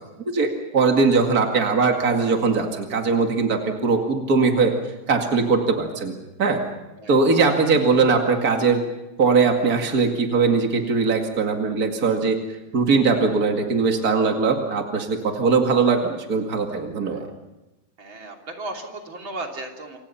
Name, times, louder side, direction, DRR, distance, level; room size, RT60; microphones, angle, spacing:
voice 1, 0.3-4.7 5.1-6.1 6.4-6.6 7.1-8.8 9.2-12.4 12.7-17.3, right 4 dB, 50° right, 3 dB, 2.6 m, -20 dB
voice 2, 18.0-20.0, right 2 dB, 75° right, 2 dB, 4.0 m, -35 dB
28.5 x 26.0 x 5.8 m, 1.0 s
omnidirectional pair, 2.2 m